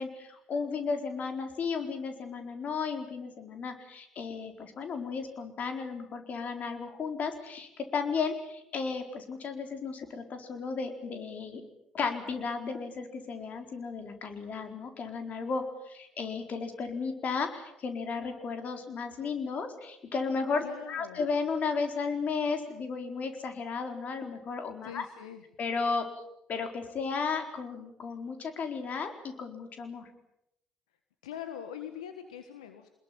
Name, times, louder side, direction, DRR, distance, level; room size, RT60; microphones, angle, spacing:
voice 1, 0.0-11.6 11.9-25.1 25.6-26.1 26.5-30.1, left 5 dB, 45° left, 6 dB, 4.3 m, -34 dB
voice 2, 20.6-21.2 24.8-25.4 31.2-32.9, left 9 dB, 80° left, 8 dB, 1.6 m, -42 dB
24.0 x 21.5 x 8.7 m, 0.80 s
hypercardioid pair, 55°, 3 cm